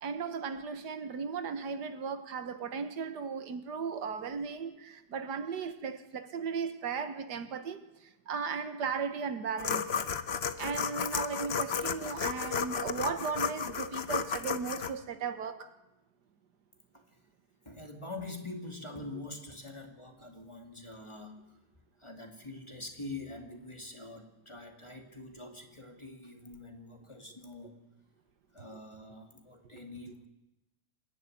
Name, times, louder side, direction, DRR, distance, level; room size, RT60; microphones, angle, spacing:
voice 1, 0.0-7.8 8.3-10.1 10.6-15.7, right 5 dB, 85° right, 1.8 m, -36 dB
sound 1, 9.6-14.9, left 6 dB, 45° left, 1.0 m, -33 dB
voice 2, 17.7-21.6 22.0-27.7 28.5-30.3, left 2 dB, 15° left, 2.4 m, -45 dB
26.5 x 11.0 x 9.2 m
omnidirectional pair, 1.8 m